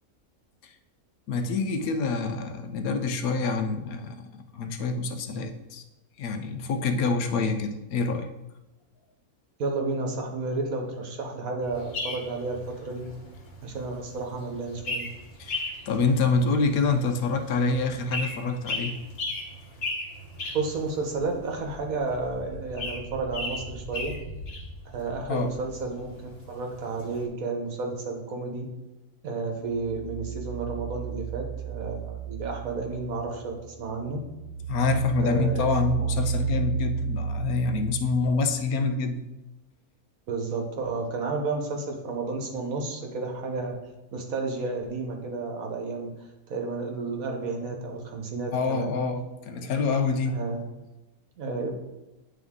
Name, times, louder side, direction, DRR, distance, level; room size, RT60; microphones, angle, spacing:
voice 1, 1.3-5.8 6.2-8.3 15.4-19.0 25.3-25.5 34.7-39.2 48.5-50.4, left 4 dB, 80° left, 7 dB, 1.1 m, -26 dB
voice 2, 9.6-13.1 13.6-15.1 20.5-24.2 24.9-28.7 29.2-34.2 35.2-35.7 35.9-36.1 40.3-43.7 44.1-46.1 46.5-48.9 50.3-50.6 51.4-51.7, right 3 dB, 70° right, 2 dB, 1.5 m, -31 dB
sound 1, 11.7-27.2, left 2 dB, 55° left, 1.5 m, -37 dB
sound 2, 29.7-33.5 33.9-38.5, right 6 dB, 40° right, 1.2 m, -32 dB
9.2 x 3.6 x 3.6 m, 1.0 s
omnidirectional pair, 1.5 m